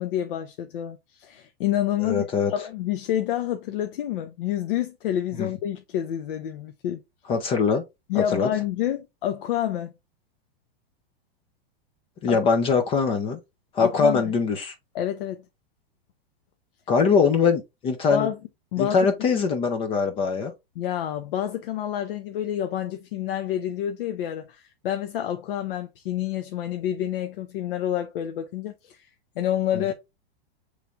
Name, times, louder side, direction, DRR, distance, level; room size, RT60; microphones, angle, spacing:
voice 1, 0.0-7.0 8.1-9.9 12.3-12.4 13.8-14.2 14.9-15.4 18.1-18.4 18.7-19.0 20.8-29.1 29.4-29.9, left 11 dB, 65° left, 0.7 m, -28 dB
voice 2, 2.0-2.5 5.4-5.5 7.3-7.8 8.1-8.5 12.2-13.4 13.7-14.7 16.9-18.3 18.8-20.5 29.7-29.8, left 5 dB, 20° left, 0.4 m, -22 dB
6.7 x 3.2 x 2.2 m
hypercardioid pair, 145°, 30 cm